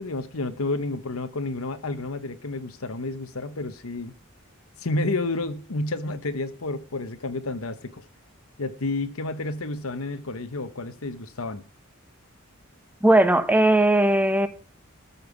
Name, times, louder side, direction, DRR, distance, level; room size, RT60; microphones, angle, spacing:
voice 1, 0.0-4.1 4.8-8.0 8.6-11.6, left 2 dB, 80° left, 1.1 m, -30 dB
voice 2, 13.0-14.5, right 1 dB, 10° right, 1.1 m, -18 dB
13.5 x 5.7 x 7.1 m
head